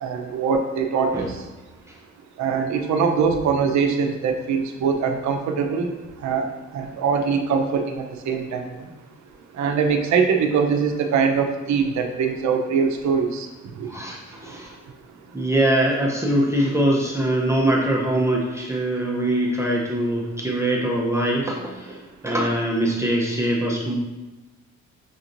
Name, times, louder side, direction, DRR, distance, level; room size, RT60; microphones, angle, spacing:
voice 1, 0.0-1.3 2.4-5.9 6.2-6.4 6.7-8.6 9.6-13.5, right 6 dB, 70° right, 4 dB, 0.7 m, -22 dB
voice 2, 13.8-14.8 15.3-24.0, right 1 dB, 10° right, -3 dB, 0.7 m, -23 dB
6.5 x 2.8 x 2.6 m, 1.1 s
cardioid pair, 90°, 30 cm